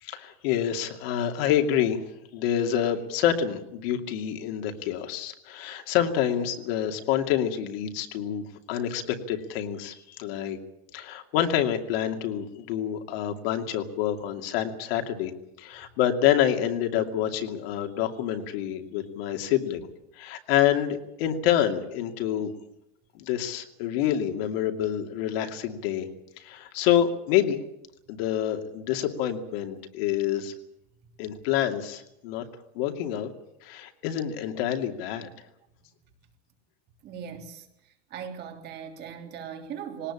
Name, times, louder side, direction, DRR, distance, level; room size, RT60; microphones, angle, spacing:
voice 1, 0.0-2.0 2.3-10.6 10.9-15.3 15.6-19.8 20.2-22.5 23.2-26.1 26.4-27.6 28.1-30.5 31.2-32.4 32.7-33.3 33.6-35.3, left 10 dB, 65° left, 2.6 m, -27 dB
voice 2, 37.0-37.7 38.1-40.1, right 8 dB, 30° right, 3.2 m, -38 dB
21.0 x 18.5 x 8.8 m
cardioid pair, 175°, 32 cm